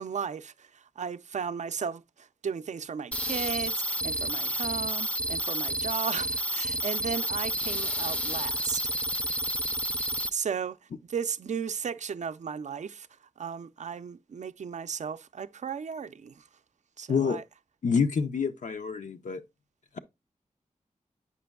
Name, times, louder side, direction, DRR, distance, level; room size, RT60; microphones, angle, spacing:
voice 1, 0.0-9.3 10.3-10.8 11.0-13.1 13.4-16.4 17.0-17.4, right 6 dB, 65° right, 0.4 m, -35 dB
sound 1, 3.1-10.3, right 1 dB, 10° left, 0.4 m, -30 dB
voice 2, 17.1-17.4 17.8-19.4, left 5 dB, 75° left, 0.5 m, -27 dB
8.2 x 5.1 x 2.2 m
wide cardioid pair, 65°, 13 cm